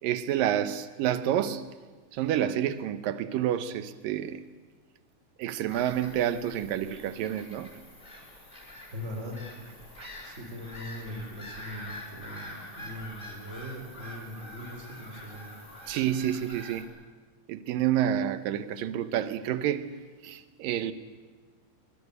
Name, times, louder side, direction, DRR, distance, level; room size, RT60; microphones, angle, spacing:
voice 1, 0.0-1.6 2.1-4.4 5.4-7.7 10.0-10.1 15.9-16.9 17.5-19.9 20.2-20.9, right 11 dB, 90° right, 2.7 m, -29 dB
Bird vocalization bird call bird song / Gull seagull, 5.7-16.8, left 1 dB, 15° left, 4.1 m, -46 dB
voice 2, 8.9-9.4 10.2-15.5, left 1 dB, 20° right, 4.1 m, -40 dB
23.5 x 22.0 x 8.3 m
omnidirectional pair, 3.8 m